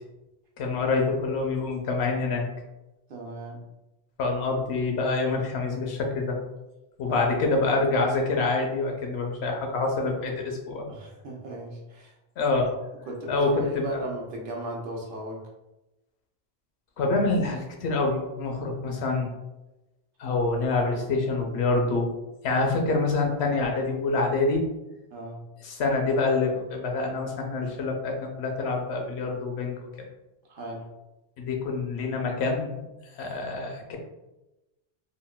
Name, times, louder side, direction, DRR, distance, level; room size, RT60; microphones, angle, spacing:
voice 1, 0.6-2.4 4.2-6.4 7.0-10.9 12.4-12.7 13.3-14.0 17.0-19.3 20.2-22.1 22.4-24.6 25.6-29.7 31.4-32.8 33.1-34.0, left 3 dB, 85° left, 1 dB, 0.9 m, -26 dB
voice 2, 3.1-3.7 7.1-7.2 10.9-12.1 13.1-15.4 25.1-25.4 30.5-30.9, right 1 dB, 60° right, -1 dB, 0.7 m, -36 dB
3.7 x 2.1 x 2.2 m, 1.0 s
omnidirectional pair, 1.1 m